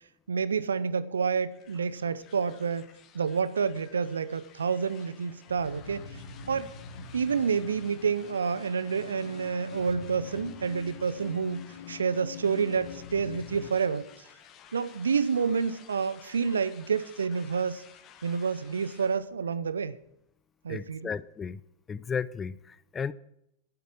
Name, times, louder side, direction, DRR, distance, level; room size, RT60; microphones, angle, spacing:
voice 1, 0.3-2.9 3.1-6.0 6.5-6.7 7.1-14.1 14.7-17.8 18.2-20.0 20.6-21.1, right 6 dB, 70° right, 0.6 m, -29 dB
sound 1, 1.5-19.2, left 8 dB, 35° left, 1.3 m, -54 dB
sound 2, 5.0-13.7, left 6 dB, 55° left, 1.0 m, -45 dB
voice 2, 20.7-21.6 21.9-23.1, left 6 dB, 20° left, 0.4 m, -34 dB
11.5 x 8.4 x 7.4 m
figure-of-eight pair, 90°, 0 cm